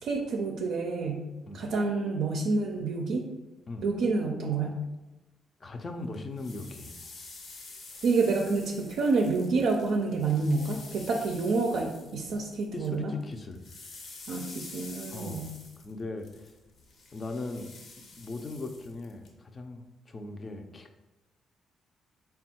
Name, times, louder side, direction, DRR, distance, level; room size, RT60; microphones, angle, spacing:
voice 1, 0.0-1.2 1.5-3.3 3.8-4.8 8.0-13.1 14.3-15.5, right 3 dB, 75° right, 2 dB, 0.4 m, -28 dB
voice 2, 5.6-6.9 7.9-8.0 12.7-13.6 15.1-15.5 15.8-16.5 17.1-20.9, left 2 dB, 35° left, 5 dB, 0.5 m, -39 dB
sound 1, 6.1-12.9 13.2-19.3, left 3 dB, 60° left, 0.7 m, -48 dB
3.6 x 2.3 x 4.3 m, 1.0 s
cardioid pair, 90°, 0 cm